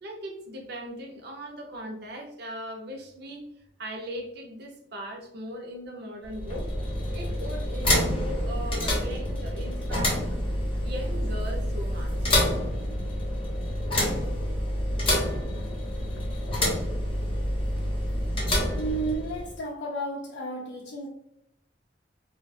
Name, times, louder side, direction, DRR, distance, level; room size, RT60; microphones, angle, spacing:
voice 1, 0.0-3.4 3.8-6.7 7.1-10.4 10.8-12.4, equal, 60° right, 0.5 m, -38 dB
sound 1, 6.2-19.5, left 1 dB, 30° left, 0.7 m, -28 dB
voice 2, 18.8-21.1, right 2 dB, 80° left, 0.4 m, -32 dB
2.4 x 2.2 x 2.6 m
head